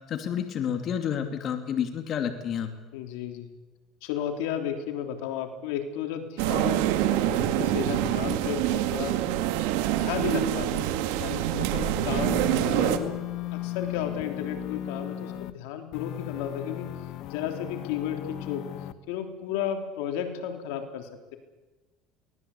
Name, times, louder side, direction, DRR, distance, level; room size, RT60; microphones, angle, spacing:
voice 1, 0.1-2.7, left 8 dB, 45° left, 6 dB, 2.6 m, -29 dB
voice 2, 2.9-3.5 4.0-6.8 7.1-9.2 10.0-13.2 13.5-16.9 17.3-18.6 19.1-21.4, left 9 dB, 80° left, 5 dB, 3.4 m, -33 dB
sound 1, 6.4-13.0, right 12 dB, 80° right, 1.9 m, -26 dB
sound 2, 12.1-15.5 15.9-18.9, left 13 dB, 60° left, 1.4 m, -36 dB
23.0 x 19.0 x 8.5 m, 1.1 s
supercardioid pair, 115°, 0 cm